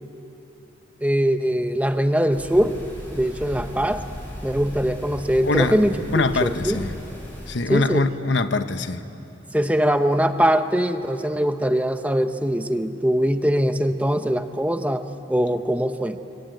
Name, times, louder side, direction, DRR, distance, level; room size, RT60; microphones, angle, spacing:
voice 1, 1.0-2.8 3.1-4.0 4.4-6.8 7.7-8.0 9.5-16.2, equal, 10° right, 0.8 m, -22 dB
sound 1, 2.3-7.5, equal, 10° left, 6.8 m, -37 dB
voice 2, 5.4-5.8 6.1-7.0 7.5-9.0, left 3 dB, 80° left, 1.1 m, -23 dB
26.0 x 24.5 x 9.2 m
head